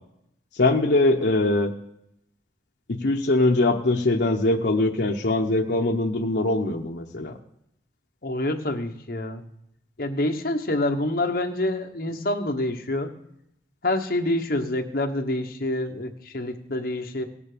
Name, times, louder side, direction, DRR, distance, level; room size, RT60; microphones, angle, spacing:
voice 1, 0.5-1.7 2.9-7.4, left 2 dB, 75° left, 1 dB, 0.8 m, -22 dB
voice 2, 8.2-9.4 10.0-13.1 13.8-17.2, left 1 dB, 55° left, 3 dB, 1.2 m, -27 dB
17.5 x 7.2 x 5.1 m, 0.77 s
head